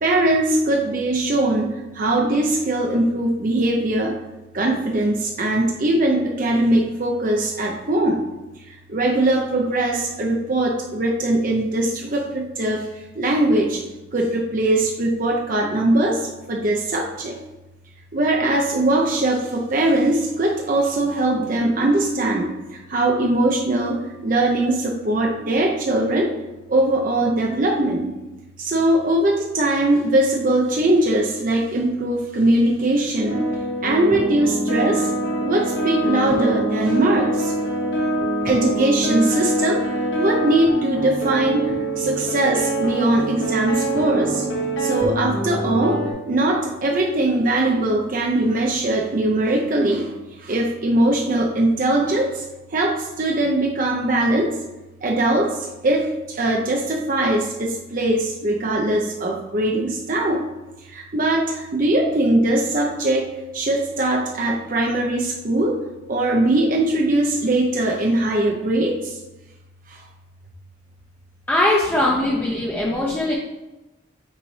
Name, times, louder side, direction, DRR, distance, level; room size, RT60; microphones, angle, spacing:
voice 1, 0.0-4.1 4.5-8.2 8.7-12.9 13.1-13.8 14.1-17.4 18.1-26.3 26.7-28.1 28.6-33.4 33.8-35.1 35.4-37.5 38.4-39.8 40.2-44.4 44.8-46.0 46.3-50.1 50.4-52.4 52.7-54.5 55.0-60.4 60.9-63.3 63.5-65.7 66.1-69.2 69.9-70.0 72.9-73.2, right 1 dB, 45° right, 0 dB, 0.6 m, -21 dB
sound 1, 33.3-46.1, right 1 dB, 65° left, 1.2 m, -24 dB
voice 2, 71.5-73.3, left 1 dB, 10° left, -4 dB, 0.6 m, -20 dB
8.9 x 4.1 x 3.2 m, 1.0 s
head